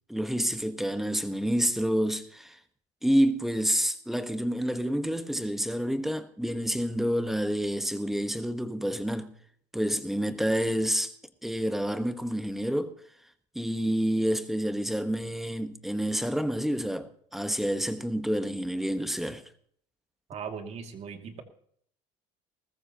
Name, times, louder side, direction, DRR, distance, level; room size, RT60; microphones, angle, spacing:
voice 1, 0.1-2.6 3.0-9.3 9.7-11.1 11.4-13.0 13.5-19.4, equal, ahead, 1.2 m, -28 dB
voice 2, 20.3-21.4, right 6 dB, 50° right, 2.4 m, -38 dB
20.0 x 14.5 x 2.9 m
supercardioid pair, 100°, 15 cm